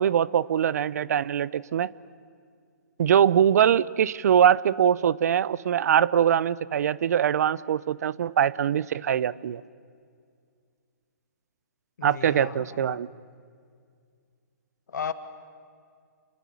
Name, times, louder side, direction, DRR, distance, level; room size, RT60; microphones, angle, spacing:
voice 1, 0.0-1.9 3.0-9.6 12.0-13.1, right 9 dB, 60° right, 0.7 m, -22 dB
voice 2, 12.0-13.0 14.9-15.1, left 7 dB, 75° left, 1.9 m, -35 dB
28.0 x 20.5 x 8.6 m
hypercardioid pair, 150°, 10 cm